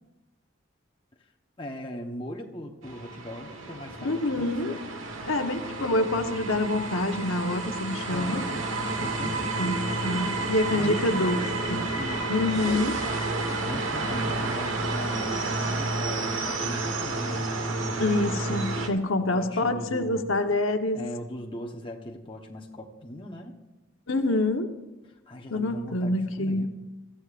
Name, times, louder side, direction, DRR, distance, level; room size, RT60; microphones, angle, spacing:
voice 1, 1.6-4.8 8.0-8.7 9.0-9.7 10.7-11.3 11.9-13.0 13.6-18.0 19.2-20.3 20.9-23.6 25.1-26.7, left 1 dB, 25° left, 0 dB, 1.0 m, -39 dB
sound 1, 2.8-18.9, right 2 dB, 80° right, 1.4 m, -30 dB
voice 2, 4.0-4.7 5.3-8.4 9.6-11.4 11.7-11.8 12.3-12.9 18.0-21.0 24.1-24.7 25.5-26.7, left 2 dB, 85° left, 5 dB, 1.1 m, -26 dB
23.0 x 14.5 x 2.5 m, 1.1 s
head